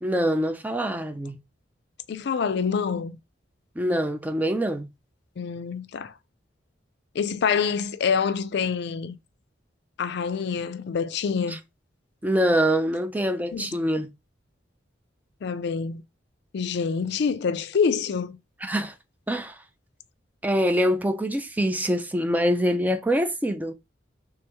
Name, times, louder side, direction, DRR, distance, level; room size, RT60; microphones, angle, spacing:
voice 1, 0.0-1.4 3.8-4.9 11.5-11.6 12.2-14.1 18.6-18.9 19.3-19.6 20.4-23.7, equal, 10° right, 0.4 m, -24 dB
voice 2, 2.1-3.2 5.4-6.1 7.1-9.2 10.0-11.6 13.5-13.7 15.4-16.0 16.5-18.4, left 6 dB, 60° left, 0.4 m, -26 dB
3.4 x 3.4 x 2.9 m
head